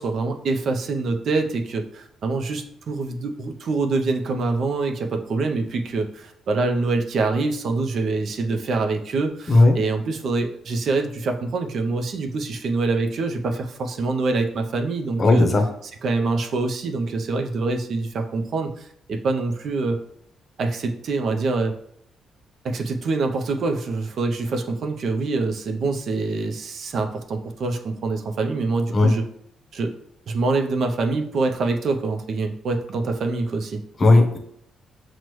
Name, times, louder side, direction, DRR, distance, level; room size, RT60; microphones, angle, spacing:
voice 1, 0.0-15.5 15.8-20.0 20.6-21.7 22.6-29.2 29.7-29.9 30.3-33.8, right 3 dB, 60° right, 4 dB, 0.5 m, -25 dB
voice 2, 15.2-15.7 28.9-29.1 34.0-34.4, left 2 dB, 35° left, 4 dB, 0.7 m, -15 dB
6.0 x 2.1 x 3.0 m, 0.69 s
cardioid pair, 90°, 0 cm